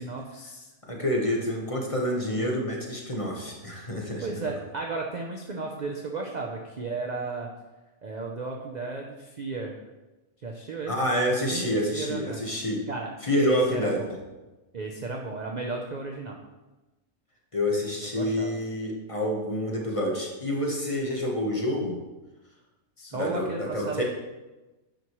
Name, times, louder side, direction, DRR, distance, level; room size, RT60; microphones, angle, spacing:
voice 1, 0.0-0.7 4.2-7.5 8.0-9.8 10.4-10.9 11.5-12.4 12.9-14.1 14.7-16.4 18.0-18.6 23.0-24.0, right 3 dB, 45° right, 1 dB, 0.6 m, -34 dB
voice 2, 0.9-4.4 10.9-12.8 13.2-14.0 17.5-22.0 23.1-24.0, left 1 dB, 25° left, -1 dB, 1.1 m, -28 dB
8.9 x 6.1 x 3.1 m, 1.1 s
omnidirectional pair, 1.5 m